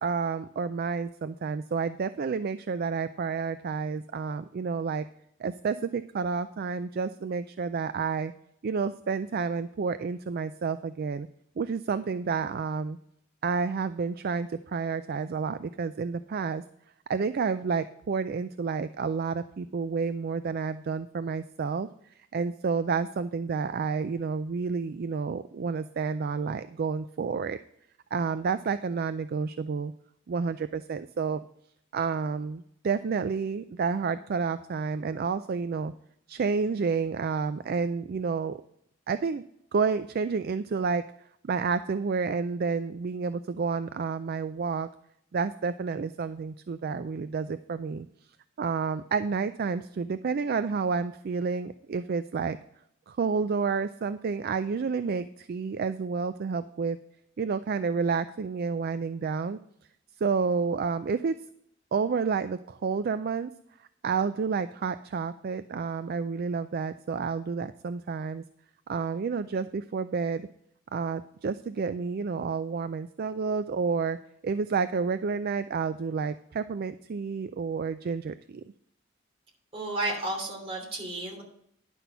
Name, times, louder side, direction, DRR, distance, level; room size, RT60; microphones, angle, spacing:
voice 1, 0.0-5.1 5.4-8.3 8.6-11.3 11.6-13.0 13.4-16.6 17.1-21.9 22.3-27.6 28.1-29.9 30.3-31.4 31.9-35.9 36.3-38.6 39.1-39.4 39.7-41.0 41.4-44.9 45.3-48.1 48.6-52.6 53.1-57.0 57.4-59.6 60.2-61.4 61.9-63.5 64.0-68.4 68.9-70.5 70.9-74.2 74.4-78.6, right 5 dB, 50° right, 12 dB, 0.4 m, -30 dB
voice 2, 79.7-81.4, right 2 dB, 30° right, -1 dB, 3.0 m, -32 dB
11.0 x 6.0 x 5.6 m, 0.71 s
head